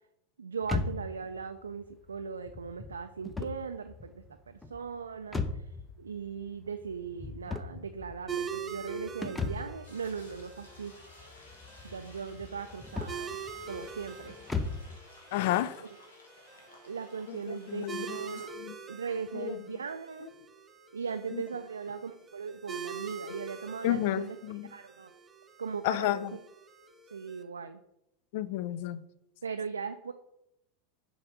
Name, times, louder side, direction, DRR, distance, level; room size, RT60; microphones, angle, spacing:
voice 1, 0.4-10.9 11.8-13.4 13.7-14.4 15.8-16.0 16.8-18.5 18.9-20.3 20.9-24.4 24.7-25.1 25.6-26.2 27.1-27.8 29.4-30.1, right 6 dB, 80° right, 7 dB, 0.3 m, -39 dB
sound 1, 0.6-15.0, left 4 dB, 10° left, 0.6 m, -39 dB
sound 2, 8.3-27.4, right 6 dB, 20° right, 0.8 m, -45 dB
sound 3, 9.8-18.5, left 2 dB, 75° left, 1.5 m, -56 dB
voice 2, 15.3-15.9 17.3-18.2 18.6-18.7 19.3-19.6 21.3-21.4 23.8-24.7 25.8-26.3 28.3-29.0, left 13 dB, 55° left, 15 dB, 0.4 m, -31 dB
6.4 x 3.9 x 4.7 m, 0.82 s
figure-of-eight pair, 85°, 0 cm